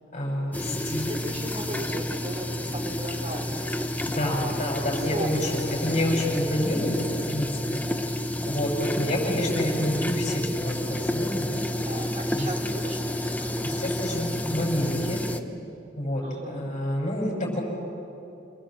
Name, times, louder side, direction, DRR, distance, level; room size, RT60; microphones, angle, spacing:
voice 1, 0.1-1.1 4.2-7.0 7.3-7.8 8.5-11.5 12.3-12.5 13.6-15.2 16.0-17.6, left 1 dB, 40° left, -2 dB, 6.3 m, -28 dB
sound 1, 0.5-15.4, left 1 dB, 10° left, 0.8 m, -30 dB
voice 2, 0.6-4.5 4.9-7.0 8.3-8.8 11.8-14.4 16.2-16.7, right 1 dB, 35° right, 0 dB, 2.8 m, -38 dB
28.0 x 20.5 x 7.7 m, 2.8 s
head